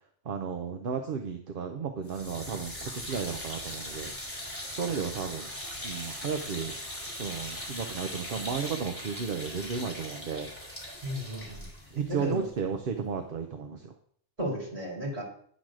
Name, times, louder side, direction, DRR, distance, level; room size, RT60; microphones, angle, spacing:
voice 1, 0.3-4.1 4.7-5.5 5.8-6.7 7.2-10.5 11.9-13.9, right 6 dB, 55° right, 6 dB, 0.8 m, -33 dB
sound 1, 2.0-13.1, left 1 dB, 10° left, 2.8 m, -40 dB
voice 2, 11.0-11.7 12.1-12.4 14.4-15.2, equal, 30° right, -4 dB, 3.4 m, -34 dB
10.5 x 4.1 x 6.2 m, 0.63 s
omnidirectional pair, 1.2 m